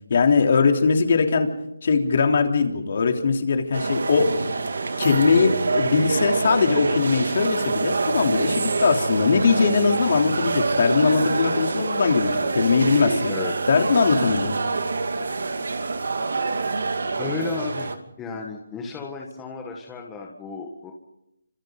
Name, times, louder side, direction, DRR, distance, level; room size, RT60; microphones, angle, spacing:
voice 1, 0.1-1.5 1.8-4.3 5.0-13.3 13.7-14.5, left 5 dB, 45° left, 4 dB, 3.4 m, -20 dB
sound 1, 3.7-18.0, right 3 dB, 70° right, 2.6 m, -26 dB
voice 2, 17.2-20.9, left 4 dB, 10° left, 0 dB, 1.6 m, -33 dB
29.5 x 26.0 x 4.0 m, 0.84 s
hypercardioid pair, 170°, 0 cm